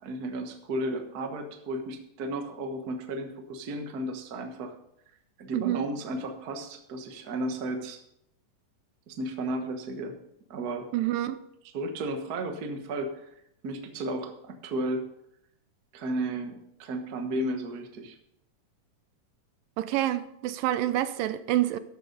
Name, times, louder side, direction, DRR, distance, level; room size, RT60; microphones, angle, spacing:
voice 1, 0.0-4.7 5.4-8.0 9.1-10.2 10.5-10.9 11.7-13.3 13.6-15.1 15.9-18.1, right 1 dB, 65° right, 0.9 m, -33 dB
voice 2, 5.5-5.9 10.9-11.4 19.8-21.8, right 14 dB, 85° right, 2.4 m, -27 dB
13.0 x 6.7 x 5.2 m
omnidirectional pair, 3.9 m